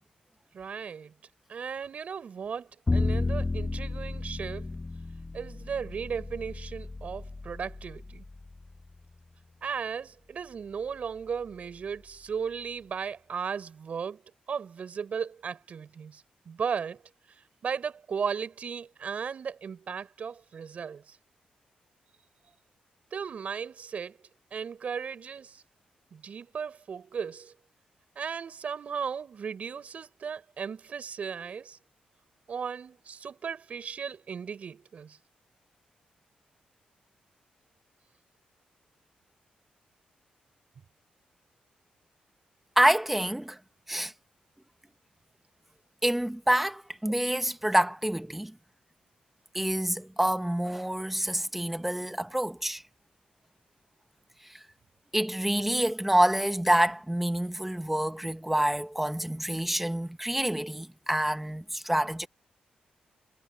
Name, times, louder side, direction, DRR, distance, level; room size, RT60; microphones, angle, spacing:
voice 1, 0.5-1.1 1.5-4.7 5.3-8.2 9.6-14.2 14.5-17.0 17.6-21.2 23.1-24.2 24.5-25.6 26.1-27.5 28.2-31.8 32.5-35.2, right 6 dB, 55° right, 5.4 m, -36 dB
Bowed string instrument, 2.9-9.0, left 3 dB, 25° left, 1.4 m, -33 dB
voice 2, 42.8-43.6 43.9-44.1 46.0-48.5 49.5-52.8 55.1-62.3, right 1 dB, 5° right, 1.8 m, -27 dB
cardioid pair, 85°, 3 cm